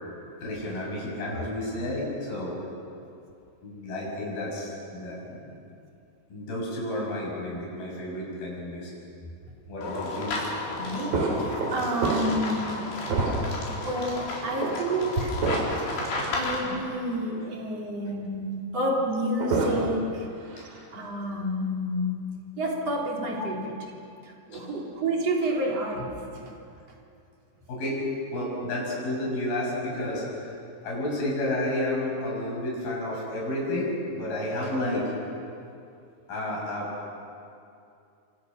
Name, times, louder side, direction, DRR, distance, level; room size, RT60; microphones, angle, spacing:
voice 1, 0.4-2.6 3.6-5.4 6.3-8.9 9.7-10.4 24.5-24.6 27.7-28.0 28.3-30.5 30.8-35.1 36.3-36.9, left 1 dB, 60° left, -3 dB, 8.7 m, -31 dB
sound 1, 9.8-16.6, left 2 dB, 90° left, 6.4 m, -33 dB
voice 2, 10.8-12.9 13.2-15.4 16.3-20.3 20.9-22.2 22.6-23.7 24.2-26.1 26.4-26.5, right 1 dB, 40° right, -1 dB, 4.1 m, -29 dB
sound 2, 11.1-12.6 13.0-13.7 14.6-14.8 15.4-15.9 16.4-16.5 19.1-20.1 20.4-20.8, right 3 dB, 80° right, 5.7 m, -28 dB
28.5 x 26.5 x 6.6 m, 2.5 s
omnidirectional pair, 4.8 m